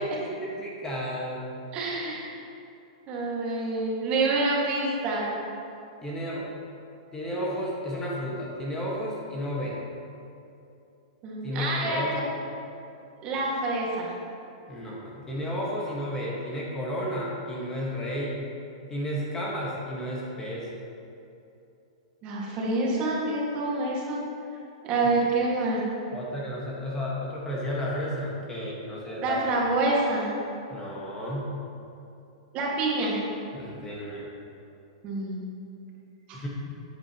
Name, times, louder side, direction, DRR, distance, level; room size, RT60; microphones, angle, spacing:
voice 1, 0.0-1.4 6.0-6.4 7.1-9.8 11.4-12.2 14.7-18.4 18.9-20.7 26.1-29.4 30.7-31.5 33.5-34.3 36.3-36.5, equal, 15° left, -4 dB, 1.7 m, -32 dB
voice 2, 1.7-2.3 3.1-5.3 11.2-12.1 13.2-14.1 22.2-24.2 24.8-25.8 29.2-30.3 32.5-33.2 35.0-35.5 36.3-36.4, right 2 dB, 35° right, -4 dB, 2.1 m, -27 dB
11.0 x 8.7 x 3.1 m, 2.8 s
hypercardioid pair, 135°, 3 cm